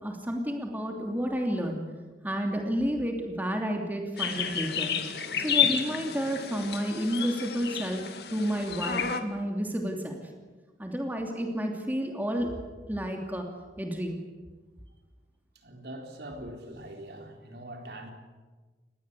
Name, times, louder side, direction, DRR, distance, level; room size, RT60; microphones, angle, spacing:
voice 1, 0.0-1.8 2.2-4.9 5.4-8.0 8.3-10.2 10.8-12.5 12.9-13.4 13.8-14.2, equal, 10° right, 2 dB, 2.9 m, -31 dB
sound 1, 4.2-9.2, left 8 dB, 60° left, 2.2 m, -30 dB
voice 2, 15.5-18.1, right 1 dB, 65° right, 3 dB, 4.1 m, -42 dB
28.5 x 20.0 x 8.5 m, 1.3 s
head